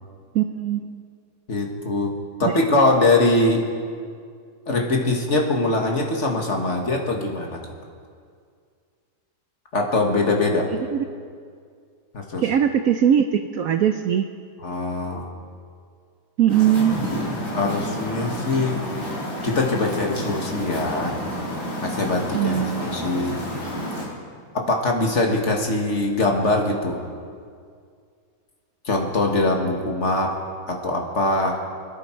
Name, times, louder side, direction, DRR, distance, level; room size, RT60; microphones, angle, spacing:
voice 1, 0.3-1.0 2.5-2.6 10.7-11.0 12.4-14.3 16.4-17.0 22.3-22.9, right 9 dB, 70° right, 7 dB, 0.9 m, -21 dB
voice 2, 1.5-2.1 2.4-3.7 4.7-7.6 9.7-10.7 12.1-12.4 14.6-15.2 17.5-18.8 19.4-21.2 21.8-23.4 24.5-27.0 28.9-30.4 30.7-31.6, left 2 dB, 45° left, 1 dB, 1.8 m, -22 dB
sound 1, 16.5-24.0, equal, 15° left, 4.4 m, -30 dB
25.0 x 10.5 x 4.5 m, 2.2 s
omnidirectional pair, 1.9 m